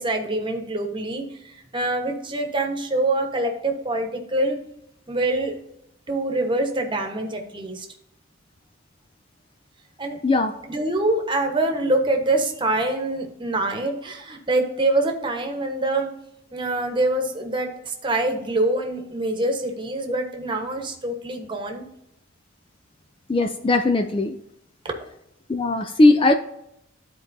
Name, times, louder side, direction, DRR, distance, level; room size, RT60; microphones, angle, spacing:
voice 1, 0.0-4.6 5.1-5.5 6.1-7.9 10.0-10.2 10.7-16.1 16.5-21.8, right 2 dB, 25° right, 3 dB, 1.1 m, -25 dB
voice 2, 23.3-24.4 25.5-26.3, left 2 dB, 25° left, 7 dB, 0.4 m, -18 dB
13.0 x 4.5 x 2.7 m, 0.83 s
head